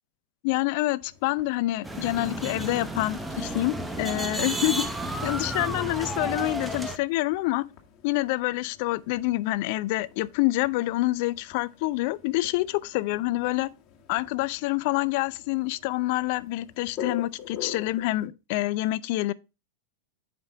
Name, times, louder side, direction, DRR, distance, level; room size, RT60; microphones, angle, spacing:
voice 1, 0.4-4.9 5.2-7.7 8.0-13.7 14.1-19.3, left 18 dB, 55° left, 0.4 m, -27 dB
sound 1, 1.0-18.3, left 9 dB, 35° left, 2.0 m, -46 dB
sound 2, 1.8-7.0, right 1 dB, 5° right, 1.0 m, -32 dB
8.7 x 5.2 x 3.4 m
figure-of-eight pair, 95°, 0 cm